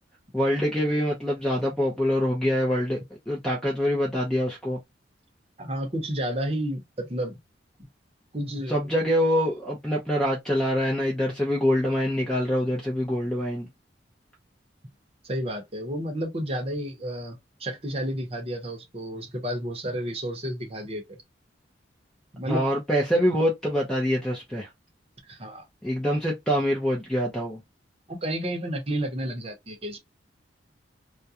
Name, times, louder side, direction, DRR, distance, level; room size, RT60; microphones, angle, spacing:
voice 1, 0.3-3.0 3.3-4.8 8.7-13.7 22.5-24.7 25.8-27.6, equal, 5° left, 0.6 m, -25 dB
voice 2, 5.6-7.4 8.3-8.8 15.2-21.2 22.3-22.7 25.3-25.7 28.1-30.0, right 1 dB, 35° right, 0.8 m, -31 dB
2.4 x 2.2 x 2.7 m
head